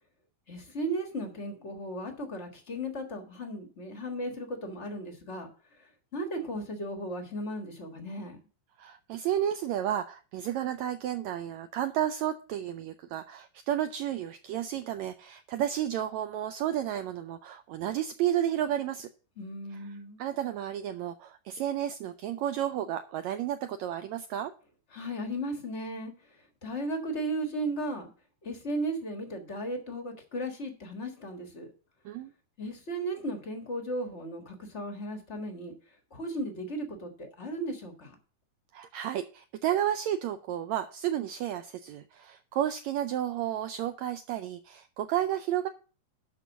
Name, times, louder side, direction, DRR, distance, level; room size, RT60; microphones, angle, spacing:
voice 1, 0.5-5.5 5.8-8.4 19.4-20.2 24.9-26.1 26.6-28.1 28.4-31.7 32.6-35.7 36.1-38.2, right 1 dB, 45° left, 4 dB, 0.9 m, -35 dB
voice 2, 8.8-19.1 19.7-19.8 20.2-24.5 32.0-32.3 38.7-45.7, right 11 dB, 85° right, 9 dB, 1.6 m, -32 dB
12.0 x 4.1 x 7.0 m, 0.38 s
omnidirectional pair, 3.7 m